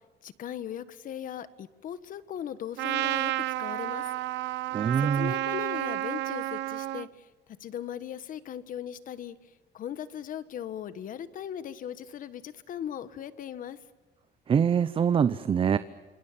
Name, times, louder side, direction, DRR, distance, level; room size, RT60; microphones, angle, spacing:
voice 1, 0.2-4.1 5.0-7.3 7.6-13.8, left 9 dB, 50° left, 14 dB, 1.4 m, -38 dB
Trumpet, 2.8-7.1, right 17 dB, 80° right, 0.8 m, -31 dB
voice 2, 4.7-5.3 14.5-15.8, right 7 dB, 30° right, 13 dB, 0.7 m, -24 dB
28.0 x 26.5 x 7.4 m, 1.3 s
cardioid pair, 170°, 18 cm